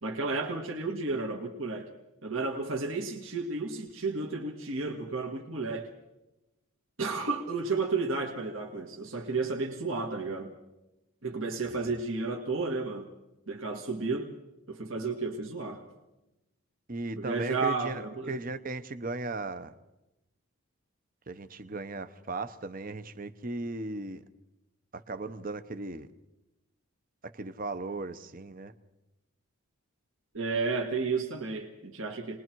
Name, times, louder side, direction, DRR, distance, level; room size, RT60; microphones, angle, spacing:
voice 1, 0.0-1.9 2.2-5.9 7.0-10.5 11.2-13.1 13.5-14.3 14.7-15.9 17.2-18.3 30.3-32.4, right 3 dB, 65° right, 1 dB, 1.9 m, -32 dB
voice 2, 11.6-12.0 16.9-18.0 18.3-19.7 21.3-24.2 24.9-26.1 27.3-28.7, right 3 dB, 40° right, 11 dB, 0.9 m, -37 dB
29.0 x 21.0 x 4.6 m, 0.96 s
head